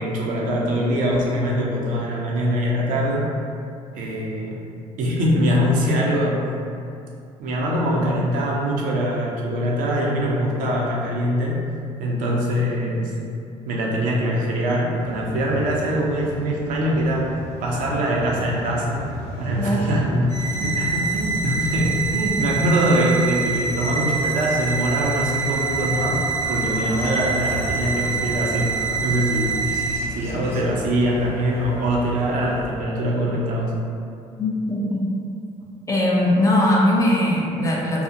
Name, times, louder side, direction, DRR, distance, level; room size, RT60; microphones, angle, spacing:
voice 1, 0.0-3.2 3.9-4.6 5.0-6.4 7.4-11.6 12.0-13.1 13.7-17.3 17.6-19.0 19.4-26.2 26.5-28.7 29.0-29.7 30.1-33.7, equal, 70° right, -3 dB, 0.5 m, -23 dB
sound 1, 14.9-29.6, equal, 90° left, 0.5 m, -36 dB
sound 2, 20.3-30.0, right 5 dB, 50° left, 0.9 m, -26 dB
sound 3, 24.0-32.7, equal, 15° right, 0.7 m, -38 dB
voice 2, 34.4-35.0 35.9-38.0, left 1 dB, 25° left, -4 dB, 0.5 m, -20 dB
2.4 x 2.1 x 2.7 m, 2.5 s
supercardioid pair, 80°, 14 cm